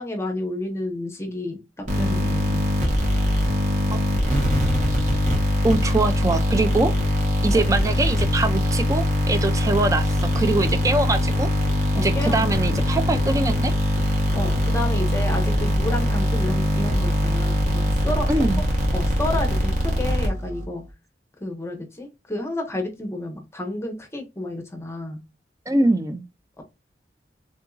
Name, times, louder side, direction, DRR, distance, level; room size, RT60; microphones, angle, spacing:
voice 1, 0.0-2.7 3.9-4.0 7.5-7.6 11.9-12.4 14.3-18.3 18.9-20.8 21.4-25.2 26.6-26.7, left 1 dB, 15° left, 0.8 m, -30 dB
sound 1, 1.9-20.6, left 1 dB, 45° right, 1.1 m, -22 dB
voice 2, 5.6-6.9 7.4-11.5 12.0-13.7 18.3-18.6 25.7-26.2, right 2 dB, 20° right, 0.4 m, -23 dB
3.7 x 2.6 x 2.3 m
head